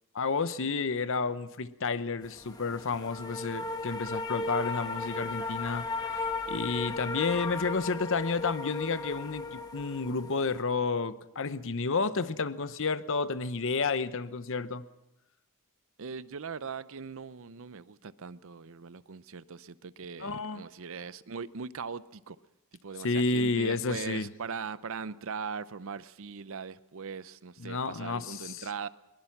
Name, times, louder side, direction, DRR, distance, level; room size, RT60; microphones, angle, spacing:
voice 1, 0.1-5.9 6.1-14.8 20.2-20.6 23.0-24.3 27.6-28.6, left 4 dB, 60° left, 0.8 m, -31 dB
sound 1, 2.2-10.6, left 3 dB, 15° left, 1.6 m, -36 dB
voice 2, 16.0-22.4 22.8-28.9, right 5 dB, 65° right, 0.6 m, -40 dB
22.0 x 21.0 x 5.9 m
head